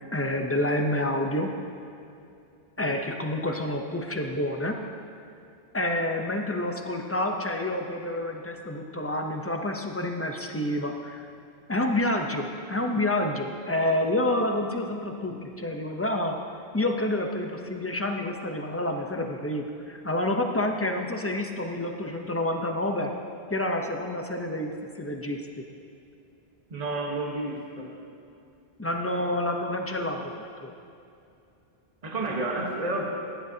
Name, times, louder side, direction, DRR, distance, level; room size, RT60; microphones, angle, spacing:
voice 1, 0.1-1.5 2.8-4.8 5.7-11.3 11.7-16.4 16.7-23.1 23.5-25.6 28.8-30.7, left 1 dB, 15° left, 3 dB, 0.6 m, -28 dB
voice 2, 26.7-27.9 32.0-33.0, right 2 dB, 40° right, -1 dB, 1.3 m, -31 dB
15.5 x 10.0 x 2.8 m, 2.6 s
omnidirectional pair, 1.1 m